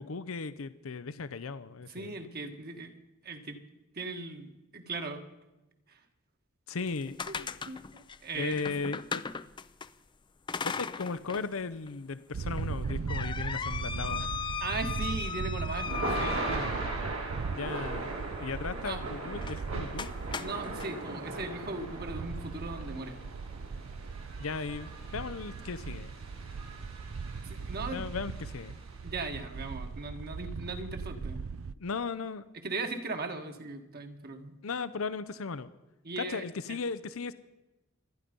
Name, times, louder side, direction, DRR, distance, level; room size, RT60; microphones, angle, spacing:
voice 1, 0.0-2.1 6.7-7.2 8.4-9.2 10.6-14.3 17.5-18.1 18.4-20.1 24.4-26.1 27.9-28.8 31.8-32.4 34.6-35.7 36.2-37.3, left 4 dB, 85° left, 14 dB, 0.7 m, -36 dB
voice 2, 1.9-2.9 3.2-3.6 3.9-5.2 5.9-6.0 7.3-8.6 14.6-16.7 18.8-19.0 20.4-23.2 27.4-28.0 29.0-31.4 32.5-34.6 36.0-36.8, right 3 dB, 50° right, 5 dB, 1.7 m, -38 dB
sound 1, 6.8-9.9 10.5-11.5 11.9-12.0 12.6-17.2 19.4-19.6 20.0-20.9, left 5 dB, 25° left, 0.5 m, -37 dB
sound 2, 12.3-31.7, right 5 dB, 75° right, 0.5 m, -39 dB
Thunder / Rain, 14.9-29.1, right 2 dB, 90° right, 4.0 m, -40 dB
26.0 x 10.5 x 5.3 m, 1.0 s
head